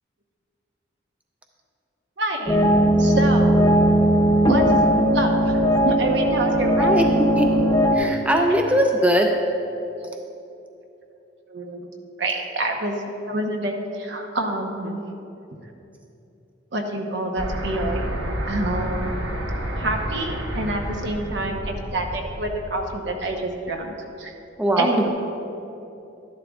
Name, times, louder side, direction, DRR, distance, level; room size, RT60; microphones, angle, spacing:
voice 1, 2.2-2.7 3.0-3.6 4.5-5.6 5.8-6.9 11.5-11.9 12.2-13.0 13.3-15.0 16.7-18.1 18.4-19.0 19.8-24.3 24.8-25.1, right 2 dB, 65° right, 3 dB, 0.9 m, -27 dB
sound 1, 2.5-7.9, equal, 20° left, 0.8 m, -18 dB
voice 2, 6.8-7.7 7.9-9.3 24.6-25.1, equal, 5° right, 2 dB, 0.4 m, -20 dB
sound 2, 17.4-23.2, equal, 90° right, 1.1 m, -30 dB
12.0 x 11.0 x 2.4 m, 2.9 s
head